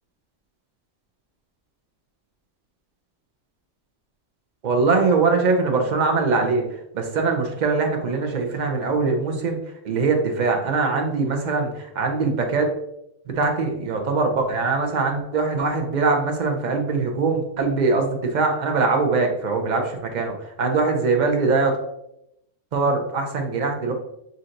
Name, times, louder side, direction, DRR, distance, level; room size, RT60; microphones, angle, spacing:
voice 1, 4.6-9.6 9.8-12.7 13.3-21.8 22.7-23.9, right 4 dB, 55° right, 3 dB, 0.5 m, -22 dB
6.3 x 2.8 x 2.5 m, 0.80 s
omnidirectional pair, 1.5 m